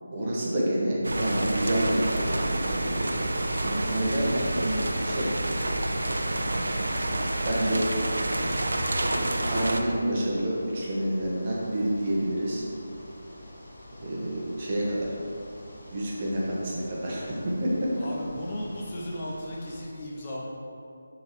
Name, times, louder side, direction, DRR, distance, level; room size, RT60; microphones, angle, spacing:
voice 1, 0.1-3.1 3.6-5.3 6.5-6.8 7.5-7.9 9.1-12.6 14.0-15.1 15.9-17.2 17.6-17.7, right 1 dB, 30° right, -6 dB, 1.3 m, -28 dB
sound 1, 1.0-9.8, right 1 dB, 80° right, 0.7 m, -28 dB
sound 2, 1.3-19.9, left 1 dB, 50° left, 1.4 m, -48 dB
voice 2, 18.0-20.5, left 1 dB, 25° left, -4 dB, 0.8 m, -36 dB
6.3 x 4.0 x 4.5 m, 2.5 s
figure-of-eight pair, 170°, 0 cm